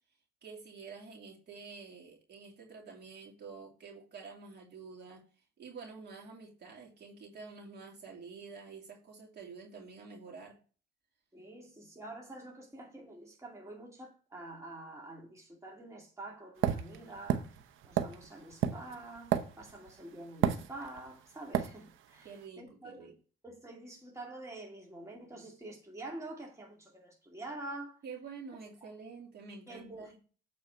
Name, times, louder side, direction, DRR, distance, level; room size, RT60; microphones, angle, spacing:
voice 1, 0.4-5.2 5.6-10.6 22.2-23.1 28.0-30.2, right 5 dB, 55° right, 2.9 m, -48 dB
voice 2, 11.3-17.5 17.8-23.1 23.4-28.0 28.8-28.9 29.7-30.2, right 2 dB, 15° right, 2.2 m, -47 dB
sound 1, 16.6-19.9 20.4-21.1 21.5-21.8, right 9 dB, 80° right, 0.8 m, -31 dB
8.1 x 4.3 x 4.5 m
cardioid pair, 90°, 20 cm